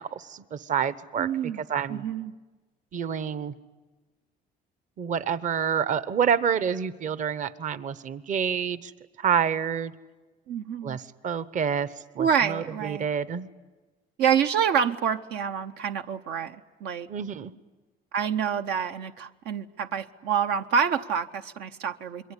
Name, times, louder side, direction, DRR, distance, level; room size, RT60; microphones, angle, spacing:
voice 1, 0.0-1.3 1.6-2.0 2.9-3.5 5.0-8.9 9.2-9.9 10.8-13.5 17.1-17.5, right 7 dB, 50° right, 15 dB, 1.0 m, -28 dB
voice 2, 1.2-1.6 1.9-2.3 10.5-11.0 12.2-13.0 14.2-17.1 18.1-22.3, right 7 dB, 80° right, 8 dB, 0.8 m, -27 dB
27.0 x 22.5 x 9.9 m, 1.2 s
cardioid pair, 110°, 17 cm